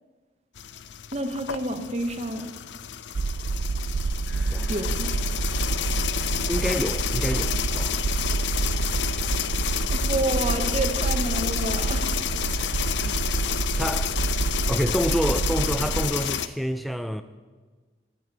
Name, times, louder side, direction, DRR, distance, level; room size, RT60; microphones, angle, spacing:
sound 1, 0.6-16.5, left 9 dB, 85° left, 0.5 m, -30 dB
voice 1, 1.1-2.5 4.7-5.1 9.9-12.1, right 1 dB, 35° right, 0.9 m, -29 dB
sound 2, 3.1-16.1, right 4 dB, 75° right, 0.4 m, -28 dB
sound 3, 4.3-8.7, left 1 dB, 50° left, 4.2 m, -51 dB
voice 2, 6.5-8.0 12.6-13.5 13.8-17.2, equal, ahead, 0.3 m, -29 dB
9.3 x 8.7 x 8.5 m
head